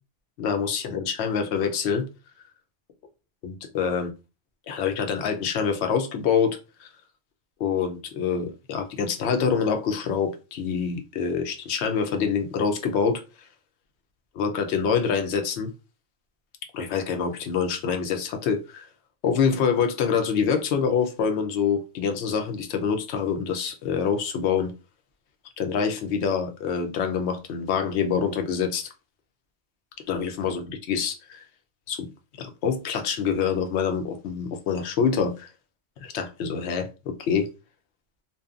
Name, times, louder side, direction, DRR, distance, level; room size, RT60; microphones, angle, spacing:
voice 1, 0.4-2.1 3.4-4.1 4.7-6.9 7.6-13.2 14.4-15.7 16.7-18.9 19.2-24.7 25.6-28.9 30.1-31.4 31.9-32.1 32.4-35.5 36.0-37.5, left 6 dB, 65° left, 0.8 m, -26 dB
2.6 x 2.2 x 2.4 m
omnidirectional pair, 1.3 m